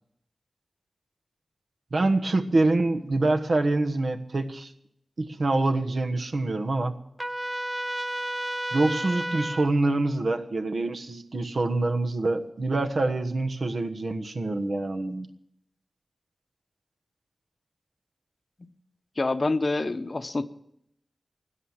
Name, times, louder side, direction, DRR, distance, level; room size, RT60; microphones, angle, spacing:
voice 1, 1.9-4.7 5.2-6.9 8.7-15.3, right 2 dB, 65° right, 6 dB, 1.3 m, -25 dB
Trumpet, 7.2-9.7, right 1 dB, 15° right, 0.5 m, -31 dB
voice 2, 19.2-20.5, left 2 dB, 40° left, 11 dB, 0.8 m, -27 dB
17.0 x 11.5 x 7.3 m, 0.77 s
wide cardioid pair, 80°, 0 cm